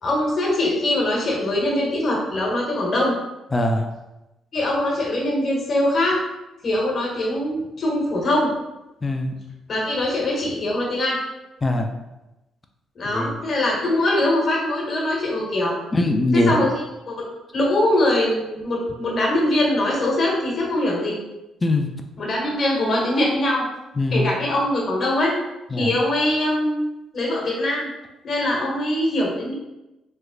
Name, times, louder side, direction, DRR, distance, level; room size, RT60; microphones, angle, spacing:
voice 1, 0.0-3.2 4.5-6.2 6.6-8.5 9.7-11.2 13.0-15.8 16.3-16.7 17.1-17.2 17.5-21.2 22.2-23.6 24.1-25.3 25.8-26.9 27.1-27.9 28.2-29.5, left 1 dB, 50° left, -3 dB, 1.1 m, -22 dB
voice 2, 3.5-3.9 9.0-9.3 11.6-11.9 13.1-13.3 15.9-16.6 21.6-21.9 24.0-24.3 25.7-25.9, left 1 dB, 20° left, 4 dB, 0.4 m, -21 dB
3.1 x 2.1 x 3.6 m, 0.98 s
cardioid pair, 90°, 0 cm